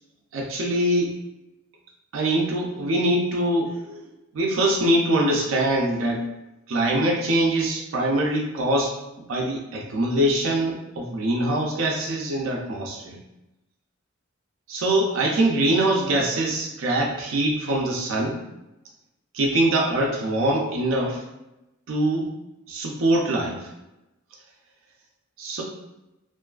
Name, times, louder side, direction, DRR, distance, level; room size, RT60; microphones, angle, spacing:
voice 1, 0.3-1.1 2.1-4.0 4.3-6.2 6.7-8.9 9.3-13.2 14.7-18.4 19.3-21.2 21.9-22.3 22.7-23.6 25.4-25.6, right 1 dB, 70° right, -1 dB, 0.4 m, -23 dB
2.5 x 2.3 x 2.3 m, 0.96 s
head